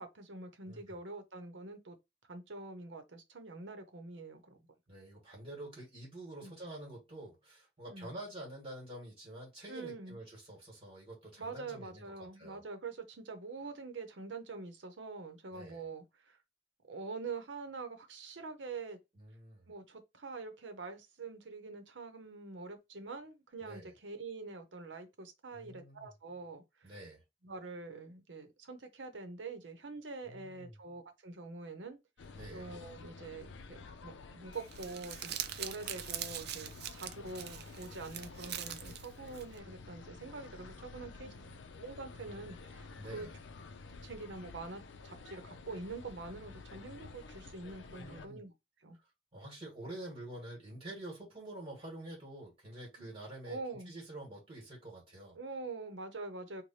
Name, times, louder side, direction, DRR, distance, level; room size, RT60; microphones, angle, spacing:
voice 1, 0.0-2.0 2.3-4.6 6.4-6.5 7.9-8.1 9.7-10.2 11.4-16.4 16.9-19.0 19.7-26.9 27.4-32.0 32.5-41.3 41.8-43.3 44.0-48.5 48.8-49.0 53.0-53.1 53.5-53.9 55.4-56.6, right 3 dB, 90° right, 0.8 m, -45 dB
voice 2, 0.6-1.0 4.9-12.1 12.4-12.6 15.5-15.9 19.1-19.7 23.6-23.9 25.5-26.1 26.8-27.2 30.2-30.7 32.3-32.7 40.9-41.5 43.0-43.3 47.9-48.4 49.0-55.4, right 1 dB, 30° right, 1.5 m, -48 dB
sound 1, 32.2-48.3, left 4 dB, 90° left, 0.5 m, -51 dB
Crumpling crinkling, 34.5-39.6, right 11 dB, 60° right, 0.4 m, -43 dB
3.2 x 2.2 x 4.1 m
head